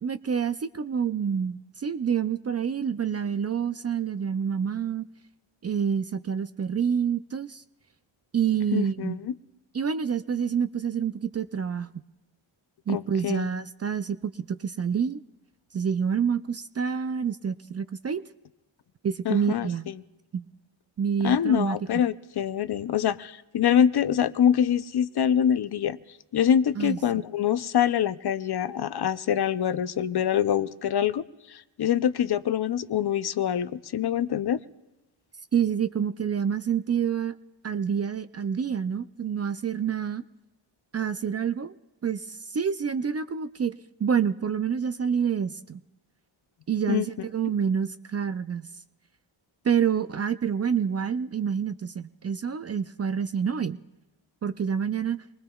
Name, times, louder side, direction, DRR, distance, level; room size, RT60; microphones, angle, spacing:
voice 1, 0.0-5.0 5.6-7.6 8.3-9.2 9.7-11.9 12.9-15.2 15.7-18.2 19.0-19.9 20.3-20.5 21.0-21.8 26.8-27.0 35.5-37.3 37.6-40.2 40.9-41.7 42.0-45.8 46.7-48.7 49.6-53.8 54.4-55.2, right 7 dB, 35° right, 12 dB, 0.4 m, -27 dB
voice 2, 8.7-9.3 12.9-13.5 19.3-19.7 21.2-26.0 26.3-34.6 46.9-47.1, left 9 dB, 55° left, 13 dB, 0.5 m, -25 dB
25.5 x 20.0 x 2.3 m, 1.0 s
cardioid pair, 55°, 50 cm